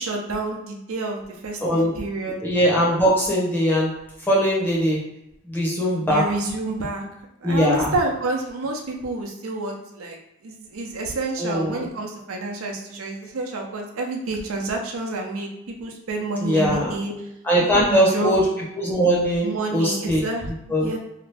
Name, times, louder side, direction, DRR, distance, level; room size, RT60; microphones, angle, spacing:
voice 1, 0.0-2.4 6.0-7.0 7.4-17.1 17.7-18.4 19.4-21.0, right 2 dB, 80° right, 1 dB, 0.6 m, -29 dB
voice 2, 1.6-1.9 2.4-3.9 4.3-5.0 5.4-6.2 7.4-7.9 11.4-11.9 16.4-16.9 17.4-18.4 18.8-20.2 20.7-20.9, equal, 10° left, -5 dB, 0.7 m, -20 dB
2.8 x 2.5 x 3.3 m, 0.86 s
head